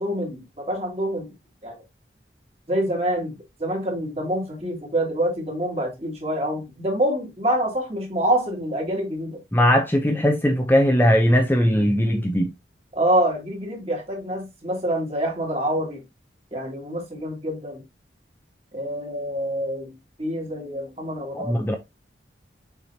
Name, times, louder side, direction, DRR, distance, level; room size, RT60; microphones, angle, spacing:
voice 1, 0.0-1.3 1.6-1.8 2.7-9.4 12.9-16.0 16.5-17.8 18.7-21.7, right 1 dB, 35° right, 2.6 m, -26 dB
voice 2, 9.5-12.5 21.3-21.7, equal, 10° left, 0.6 m, -19 dB
7.1 x 4.8 x 2.8 m
head